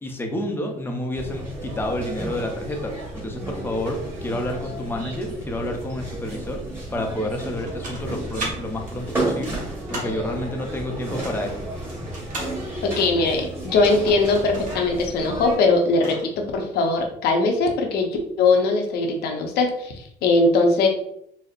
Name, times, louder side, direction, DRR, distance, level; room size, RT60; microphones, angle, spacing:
voice 1, 0.0-6.6 6.9-9.6 9.9-11.6, left 1 dB, 15° left, 3 dB, 0.6 m, -29 dB
sound 1, 1.1-15.5, right 1 dB, 15° right, 1.3 m, -32 dB
sound 2, 7.4-8.5 8.9-10.2 11.0-12.5 13.6-14.9 15.1-15.2 15.6-16.3, right 1 dB, 50° right, 1.1 m, -35 dB
voice 2, 12.8-18.1 18.4-20.9, left 3 dB, 70° left, 3 dB, 0.7 m, -20 dB
4.2 x 2.0 x 2.4 m, 0.73 s
cardioid pair, 110°, 17 cm